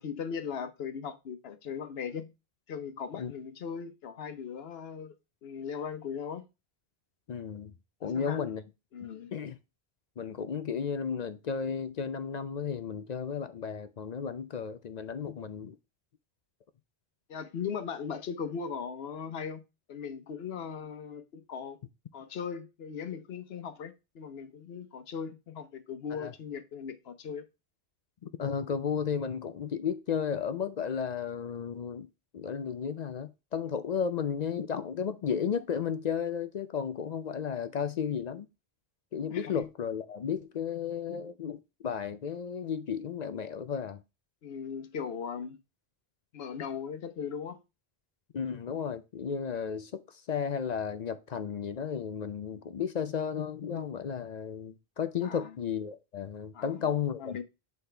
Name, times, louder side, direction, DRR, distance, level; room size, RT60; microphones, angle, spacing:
voice 1, 0.0-2.3 2.7-5.1 5.4-6.4 8.0-8.4 8.9-9.3 17.3-19.6 19.9-21.8 22.1-27.4 39.3-39.6 44.4-45.6 46.3-47.6 55.2-55.5 56.5-56.9 57.2-57.4, left 6 dB, 70° left, 1.0 m, -38 dB
voice 2, 7.3-7.7 8.0-8.6 9.3-9.6 10.2-15.8 26.2-26.3 28.2-32.1 32.3-38.5 39.1-44.0 48.3-57.4, left 7 dB, 55° left, 0.5 m, -33 dB
7.9 x 4.2 x 3.3 m
omnidirectional pair, 1.1 m